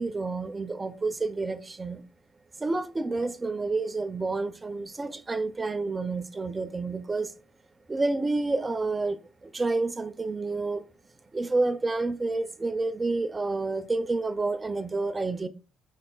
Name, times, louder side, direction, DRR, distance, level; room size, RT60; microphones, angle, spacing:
voice 1, 0.0-2.0 2.6-7.3 7.9-10.8 11.3-15.5, right 3 dB, 25° right, 0.4 m, -29 dB
5.3 x 3.7 x 2.3 m
cardioid pair, 90°, 0 cm